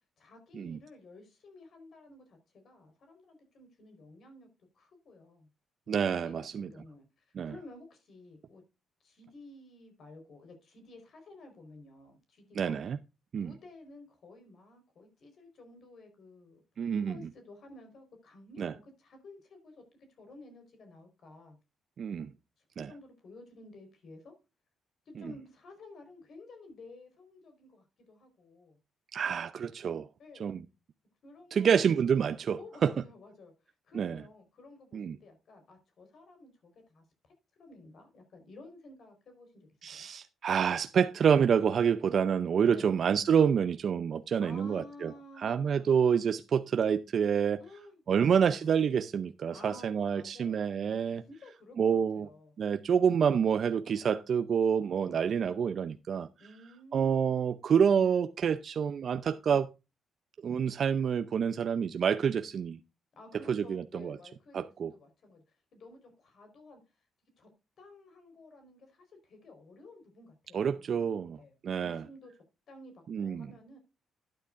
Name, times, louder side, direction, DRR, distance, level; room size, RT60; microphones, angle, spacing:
voice 1, 0.2-4.5 4.7-5.5 5.9-6.0 6.2-8.6 9.0-12.8 13.4-16.6 17.0-21.6 22.6-24.4 25.1-28.8 30.2-30.5 31.2-31.9 32.6-37.3 37.6-40.1 42.7-42.9 44.4-46.0 47.6-48.7 49.5-50.7 51.0-52.5 55.0-55.3 56.4-57.4 63.2-67.0 67.4-67.5 67.8-72.3 72.7-73.8, left 2 dB, 60° left, 4.5 m, -53 dB
voice 2, 5.9-6.7 7.3-7.5 12.6-13.0 13.3-13.6 16.8-17.2 18.6-18.7 22.0-22.3 22.8-22.9 29.1-30.1 30.4-30.6 31.5-32.9 33.9-34.2 34.9-35.2 39.8-45.1 45.4-47.6 48.1-51.2 51.8-52.3 52.6-56.3 56.9-59.7 60.4-62.8 63.5-64.2 64.5-64.9 70.5-71.4 71.6-72.0 73.1-73.5, right 7 dB, 55° right, 0.6 m, -28 dB
11.5 x 10.0 x 2.5 m
cardioid pair, 90°, 0 cm